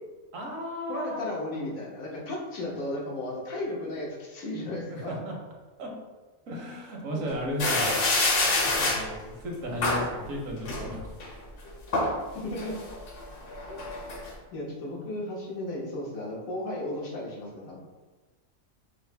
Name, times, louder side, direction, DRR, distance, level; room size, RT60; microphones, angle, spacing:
voice 1, 0.3-1.2 4.9-5.3 5.8-5.9 6.5-8.0 8.4-11.1, equal, 70° right, 0 dB, 1.2 m, -35 dB
voice 2, 0.9-5.1 7.1-7.6 8.8-8.9 12.4-12.8 13.7-13.8 14.5-17.8, left 1 dB, 85° left, -4 dB, 1.4 m, -35 dB
sound 1, 7.6-9.0 9.8-10.1 10.7-11.3 11.7-12.2 12.6-14.3, left 2 dB, 55° left, 0.7 m, -26 dB
5.4 x 2.0 x 3.3 m, 1.3 s
omnidirectional pair, 1.4 m